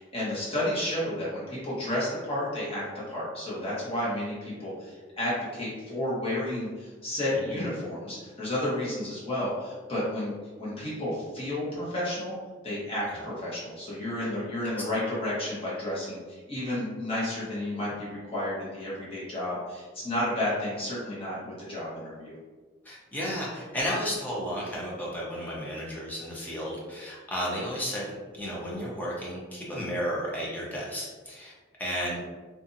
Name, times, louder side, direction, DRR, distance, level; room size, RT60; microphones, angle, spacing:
voice 1, 0.0-10.3 10.6-12.4 12.6-22.4, left 1 dB, 30° left, -8 dB, 1.1 m, -31 dB
voice 2, 22.9-28.1 28.4-31.5 31.8-32.2, equal, 10° left, -5 dB, 0.6 m, -33 dB
2.6 x 2.5 x 2.5 m, 1.4 s
head